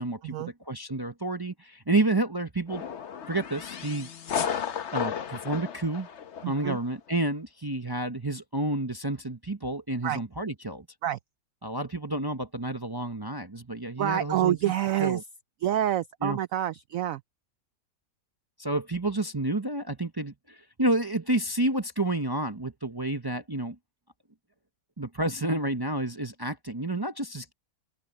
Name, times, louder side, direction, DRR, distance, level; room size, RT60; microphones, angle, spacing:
voice 1, 0.0-0.4 0.7-2.8 3.3-4.1 4.9-6.1 6.4-10.9 11.6-14.6 15.0-15.2 16.2-16.4 18.6-23.8 25.0-27.5, right 2 dB, 30° right, 0.4 m, -30 dB
sound 1, 2.7-6.7, left 8 dB, 50° left, 1.0 m, -34 dB
voice 2, 6.4-6.8 10.0-10.2 11.0-11.2 14.0-15.2 15.6-17.2, right 12 dB, 75° right, 0.8 m, -27 dB
open air
omnidirectional pair, 1.9 m